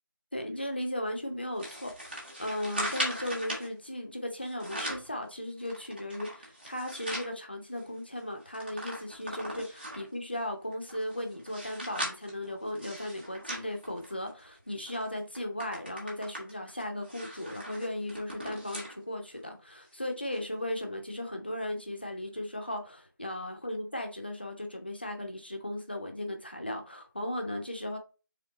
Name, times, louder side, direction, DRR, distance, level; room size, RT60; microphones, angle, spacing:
voice 1, 0.3-28.0, left 1 dB, 30° left, 0.6 m, -36 dB
sound 1, 1.6-3.7 4.4-5.1 5.6-7.3 7.8-7.9 8.1-10.1 10.7-14.5 14.9-15.0 15.3-19.0 19.4-19.5 20.3-20.4, equal, 25° right, 1.3 m, -39 dB
3.8 x 3.5 x 3.6 m
figure-of-eight pair, 175°, 11 cm